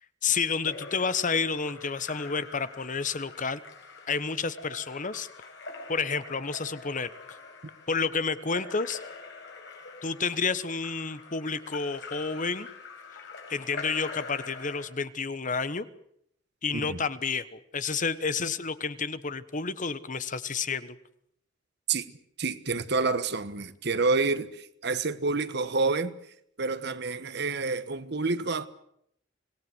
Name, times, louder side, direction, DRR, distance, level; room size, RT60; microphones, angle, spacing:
voice 1, 0.2-3.6 4.1-5.3 5.9-7.1 7.9-9.0 10.0-12.7 13.5-15.9 16.6-20.9, left 5 dB, 45° left, 1.1 m, -30 dB
Splash splatter / Drip / Trickle dribble, 0.5-14.9, left 4 dB, 65° left, 5.3 m, -44 dB
voice 2, 22.4-26.1 26.6-28.7, right 3 dB, 60° right, 1.4 m, -28 dB
25.5 x 18.5 x 8.0 m
head